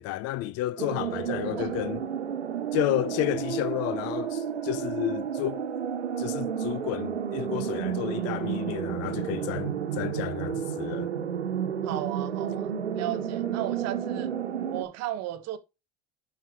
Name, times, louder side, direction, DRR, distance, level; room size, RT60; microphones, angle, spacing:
voice 1, 0.0-2.0 2.7-5.7 6.2-11.1, left 15 dB, 50° left, 0.6 m, -31 dB
sound 1, 0.8-14.8, right 8 dB, 90° right, 1.1 m, -31 dB
voice 2, 11.8-14.3 14.7-15.6, right 13 dB, 50° right, 1.3 m, -35 dB
9.1 x 6.3 x 3.0 m
hypercardioid pair, 75°, 32 cm